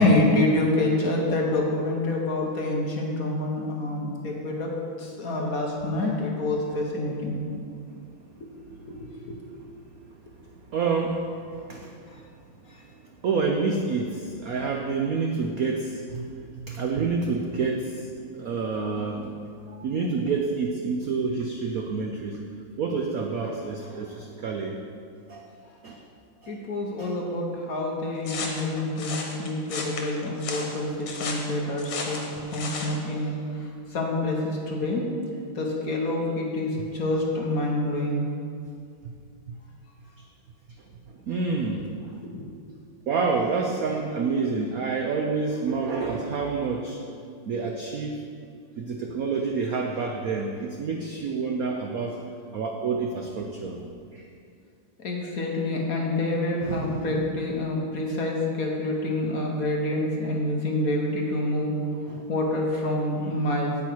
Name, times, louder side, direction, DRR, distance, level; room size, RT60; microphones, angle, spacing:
voice 1, 0.0-4.7 5.0-7.4 8.9-9.0 9.3-9.4 26.5-33.3 33.9-35.0 35.5-38.3 42.2-42.4 55.0-61.7 62.3-63.8, left 1 dB, 50° left, -1 dB, 1.3 m, -27 dB
voice 2, 10.7-11.3 11.6-12.0 13.2-16.3 16.6-19.3 19.7-22.4 22.8-24.8 25.3-25.5 25.8-26.0 26.4-26.6 27.0-27.1 32.5-32.6 33.2-33.3 39.0-39.1 39.5-39.6 40.2-40.3 41.3-42.1 43.1-47.0 47.5-48.2 48.8-52.2 52.5-53.8 54.1-54.3 56.6-57.3 62.1-62.3, right 4 dB, 75° right, 2 dB, 0.8 m, -28 dB
sound 1, 28.2-33.0, left 4 dB, 85° left, 2.1 m, -34 dB
8.9 x 8.8 x 4.6 m, 2.3 s
omnidirectional pair, 2.3 m